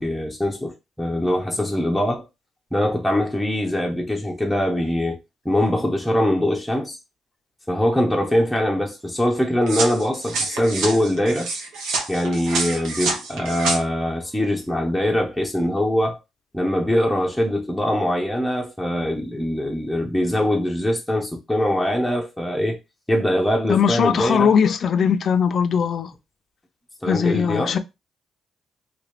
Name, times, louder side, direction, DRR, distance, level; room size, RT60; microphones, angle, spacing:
voice 1, 0.0-2.3 2.7-5.2 5.4-7.0 7.7-11.5 12.1-16.2 16.5-22.8 23.1-24.5 27.0-27.8, left 1 dB, ahead, 0.7 m, -22 dB
sound 1, 9.7-13.8, right 3 dB, 85° right, 0.9 m, -27 dB
voice 2, 23.7-26.1 27.1-27.8, left 7 dB, 55° left, 0.4 m, -20 dB
3.0 x 2.8 x 3.0 m
cardioid pair, 90°, 0 cm